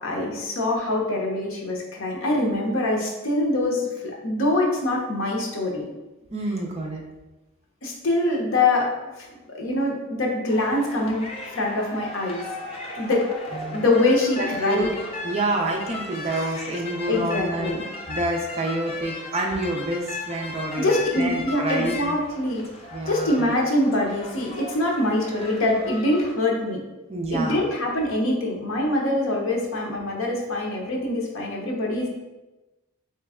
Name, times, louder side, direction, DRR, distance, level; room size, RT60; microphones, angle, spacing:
voice 1, 0.0-5.9 7.8-8.9 9.5-11.2 11.5-12.4 13.0-14.9 17.1-17.8 20.8-22.7 23.1-26.8 27.3-32.1, left 2 dB, 70° left, -1 dB, 0.8 m, -24 dB
voice 2, 6.3-7.0 13.5-13.8 14.4-14.9 15.2-17.8 18.1-22.2 22.9-23.5 27.1-27.6, right 2 dB, 30° right, 0 dB, 0.5 m, -28 dB
sound 1, 10.5-26.3, left 2 dB, 30° left, 0.5 m, -37 dB
3.3 x 3.0 x 3.5 m, 1.1 s
head